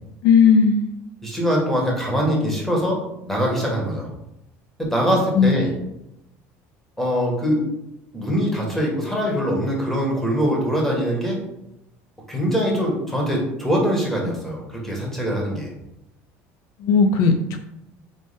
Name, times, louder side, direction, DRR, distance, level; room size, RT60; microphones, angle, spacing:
voice 1, 0.2-0.8 5.3-5.7 16.8-17.6, left 5 dB, 65° left, 6 dB, 0.4 m, -16 dB
voice 2, 1.2-3.0 3.3-4.1 4.8-5.7 7.0-7.6 8.1-11.4 12.3-15.7, equal, 5° left, -2 dB, 1.4 m, -23 dB
3.9 x 3.4 x 3.5 m, 0.86 s
supercardioid pair, 120°, 6 cm